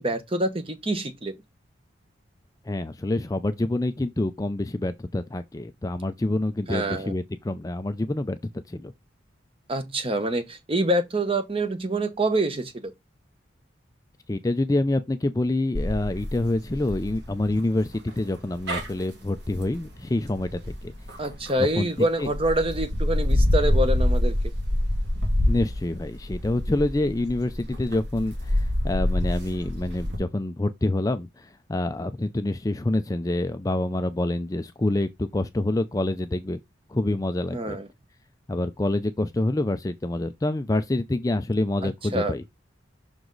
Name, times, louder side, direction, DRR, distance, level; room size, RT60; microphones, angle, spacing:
voice 1, 0.0-1.3 6.7-7.1 9.7-12.9 21.2-24.3 37.5-37.9 41.8-42.3, right 1 dB, 25° right, 0.9 m, -26 dB
voice 2, 2.7-8.4 8.7-8.9 14.3-20.9 21.6-21.9 22.2-22.3 25.4-36.6 36.9-37.8 38.5-42.4, left 2 dB, 15° left, 0.4 m, -27 dB
sound 1, 15.7-21.7 22.2-30.2, left 1 dB, 55° right, 2.3 m, -26 dB
6.2 x 4.8 x 3.9 m
head